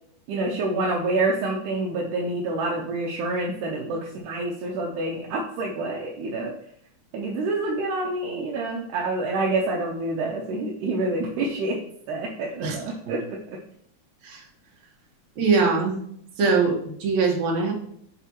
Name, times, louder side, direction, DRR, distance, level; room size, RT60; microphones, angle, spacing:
voice 1, 0.3-6.5 7.1-11.8 12.1-13.6, right 2 dB, 90° right, -1 dB, 2.3 m, -27 dB
voice 2, 12.6-13.2 14.2-14.4 15.4-16.0 16.4-17.7, right 4 dB, 70° right, -1 dB, 2.5 m, -23 dB
6.9 x 4.7 x 2.9 m, 0.66 s
omnidirectional pair, 3.5 m